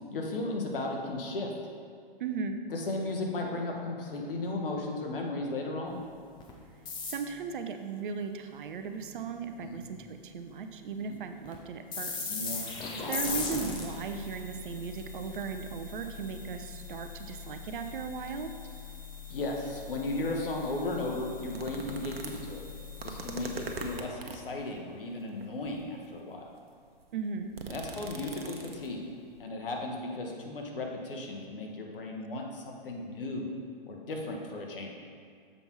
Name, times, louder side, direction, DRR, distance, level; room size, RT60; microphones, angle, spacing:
voice 1, 0.1-1.5 2.7-6.0 9.7-9.8 12.3-12.6 19.3-22.6 23.0-26.5 27.7-29.0 29.4-33.5 33.9-34.9, left 2 dB, 70° left, 1 dB, 1.4 m, -35 dB
voice 2, 2.2-2.6 7.0-12.6 13.1-18.5 27.1-27.5, right 5 dB, 60° right, 7 dB, 0.7 m, -37 dB
sound 1, 6.4-6.5 6.9-7.5 11.5-11.6 11.9-24.0, left 4 dB, 15° left, 0.7 m, -40 dB
sound 2, 21.5-24.5 25.4-25.9 26.5-26.6 26.8-29.0 29.4-29.5, right 4 dB, 85° right, 1.0 m, -42 dB
7.0 x 5.3 x 4.6 m, 2.1 s
hypercardioid pair, 130°, 29 cm